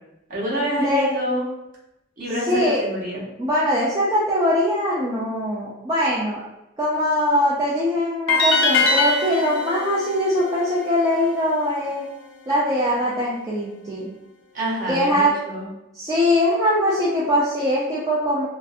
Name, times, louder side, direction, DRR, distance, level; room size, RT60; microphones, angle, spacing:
voice 1, 0.3-1.5 2.2-3.2 14.5-15.7, equal, 40° right, -5 dB, 0.7 m, -26 dB
voice 2, 2.5-2.8 3.4-6.4 6.8-12.0 12.5-14.1 14.9-15.3 15.9-18.5, equal, 15° right, -7 dB, 0.3 m, -21 dB
sound 1, 8.3-11.4, left 3 dB, 65° left, 0.3 m, -23 dB
2.5 x 2.0 x 2.5 m, 0.91 s
head